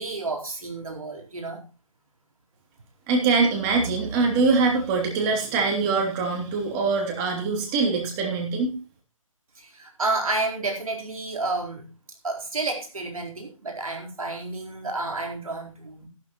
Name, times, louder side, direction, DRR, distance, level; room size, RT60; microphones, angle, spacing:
voice 1, 0.0-1.6 9.6-11.8 12.2-16.1, right 3 dB, 80° right, 1 dB, 4.3 m, -30 dB
voice 2, 3.1-8.7, right 4 dB, 20° right, 1 dB, 3.1 m, -23 dB
14.0 x 12.5 x 3.1 m, 0.31 s
figure-of-eight pair, 150°, 18 cm